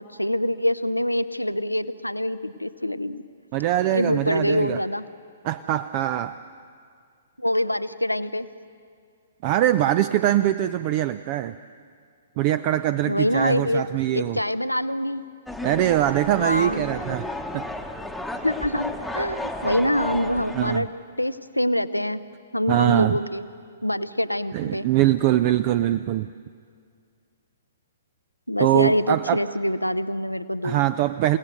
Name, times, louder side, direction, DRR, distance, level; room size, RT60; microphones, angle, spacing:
voice 1, 0.0-3.2 3.9-5.0 7.4-8.5 13.0-13.8 14.1-15.2 16.4-16.9 18.4-20.9 21.2-22.2 22.5-23.4 23.8-24.9 28.5-30.8, left 1 dB, 85° left, 13 dB, 0.7 m, -25 dB
voice 2, 3.5-4.8 5.4-6.4 9.4-11.5 12.4-14.4 15.6-17.3 17.5-17.7 20.5-20.9 22.7-23.2 24.5-26.3 28.6-29.4 30.6-31.4, right 13 dB, 35° right, 14 dB, 0.4 m, -22 dB
sound 1, 15.5-20.8, left 1 dB, ahead, 1.1 m, -33 dB
28.5 x 17.5 x 6.4 m, 2.2 s
figure-of-eight pair, 120°, 0 cm